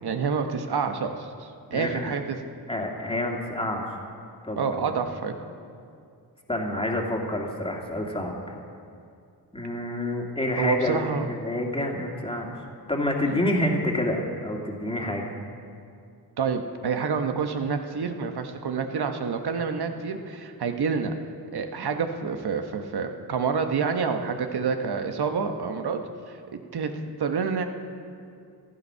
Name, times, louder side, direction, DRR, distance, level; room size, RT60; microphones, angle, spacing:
voice 1, 0.0-2.4 4.6-5.3 10.6-11.3 13.2-13.4 16.4-21.1 21.5-26.9 27.2-27.6, right 5 dB, 70° right, 6 dB, 1.2 m, -28 dB
voice 2, 1.7-2.1 2.7-3.9 4.4-4.9 6.5-8.6 9.5-12.5 12.9-15.3, left 1 dB, 15° left, 0 dB, 2.2 m, -28 dB
15.5 x 12.5 x 5.6 m, 2.4 s
cardioid pair, 85°, 40 cm